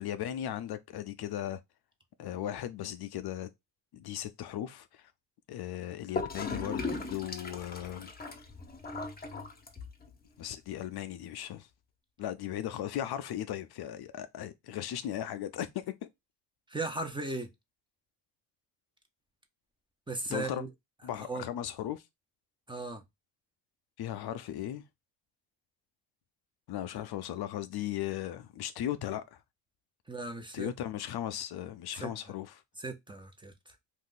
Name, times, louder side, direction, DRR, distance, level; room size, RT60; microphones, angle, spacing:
voice 1, 0.0-1.6 2.2-3.5 3.9-5.1 5.5-6.8 7.1-8.1 10.4-11.7 12.2-15.8 20.3-20.6 21.0-22.0 24.0-24.8 26.7-29.4 30.5-32.6, left 11 dB, 60° left, 0.5 m, -37 dB
Gurgling / Toilet flush, 6.1-10.1, left 3 dB, 20° left, 0.7 m, -38 dB
voice 2, 16.7-17.5 20.1-20.7 21.1-21.5 22.7-23.0 30.1-30.7 31.9-32.1 32.8-33.5, right 2 dB, 10° right, 0.6 m, -37 dB
2.6 x 2.4 x 3.7 m
cardioid pair, 80°, 43 cm